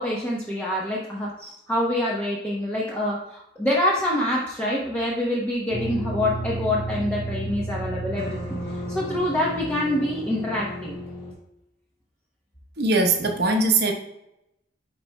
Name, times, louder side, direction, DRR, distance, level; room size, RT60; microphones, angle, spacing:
voice 1, 0.0-8.5 8.9-11.0, left 1 dB, 10° left, -5 dB, 0.9 m, -26 dB
sound 1, 5.7-11.3, right 1 dB, 30° left, 1.6 m, -32 dB
voice 2, 12.8-13.9, right 2 dB, 60° right, 4 dB, 1.0 m, -21 dB
10.0 x 4.2 x 2.2 m, 0.86 s
head